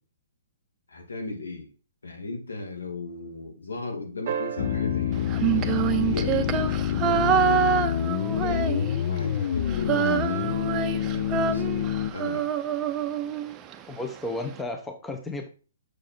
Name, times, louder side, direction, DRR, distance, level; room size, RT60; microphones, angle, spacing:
voice 1, 0.9-1.7 2.0-7.7 8.3-12.5, left 3 dB, 80° left, 2 dB, 2.3 m, -36 dB
sound 1, 4.3-6.8 9.0-9.1, right 7 dB, 50° right, 0.9 m, -36 dB
sound 2, 4.6-12.1, left 9 dB, 50° left, 0.5 m, -27 dB
Female singing, 5.3-9.2 9.5-13.8, right 8 dB, 25° right, 0.6 m, -26 dB
voice 2, 13.9-15.5, left 2 dB, 10° left, 5 dB, 0.8 m, -33 dB
6.4 x 4.6 x 4.4 m, 0.36 s
hypercardioid pair, 130°, 0 cm